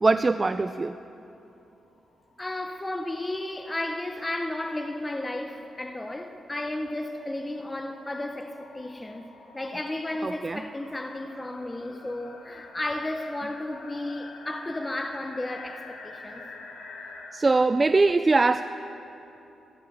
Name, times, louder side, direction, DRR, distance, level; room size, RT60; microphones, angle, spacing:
voice 1, 0.0-0.9 10.2-10.6 17.3-18.6, right 3 dB, 25° right, 0.3 m, -22 dB
sound 1, 1.7-1.8 2.0-2.1 2.3-17.3, left 3 dB, 80° left, 2.4 m, -48 dB
voice 2, 2.4-16.5, left 1 dB, 15° left, 0.7 m, -33 dB
15.0 x 11.5 x 7.6 m
cardioid pair, 100°, 0 cm